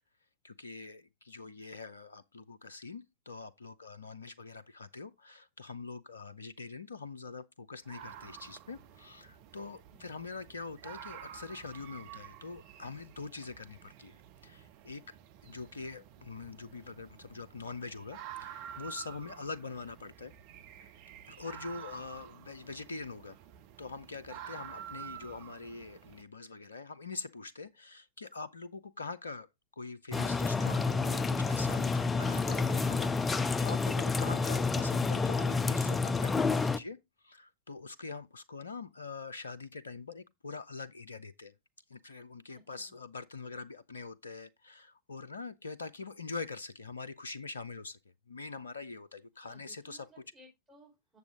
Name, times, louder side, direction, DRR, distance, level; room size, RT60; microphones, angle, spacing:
voice 1, 0.4-14.2 14.4-15.2 15.4-20.3 21.2-23.4 23.8-29.5 29.8-37.0 37.2-41.5 41.9-48.0 48.3-50.1, left 4 dB, 75° left, 0.5 m, -44 dB
sound 1, 7.8-26.2, right 10 dB, 45° right, 0.9 m, -50 dB
voice 2, 9.9-10.3 19.2-19.6 24.7-25.1 42.5-43.0 49.4-51.2, right 1 dB, 10° right, 4.1 m, -61 dB
sound 2, 30.1-36.8, left 4 dB, 15° left, 0.4 m, -29 dB
8.2 x 7.0 x 3.6 m
figure-of-eight pair, 90°, 0 cm